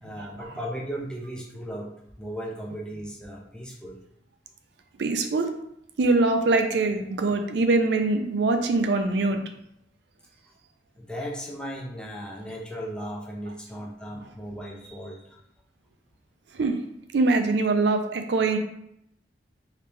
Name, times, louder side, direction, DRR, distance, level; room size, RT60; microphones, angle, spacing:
voice 1, 0.0-4.0 11.0-15.4, equal, 5° left, -2 dB, 0.5 m, -36 dB
voice 2, 5.0-5.5 6.0-9.4 16.5-16.8 17.1-18.6, right 3 dB, 80° right, 6 dB, 0.4 m, -23 dB
3.2 x 2.8 x 3.4 m, 0.77 s
head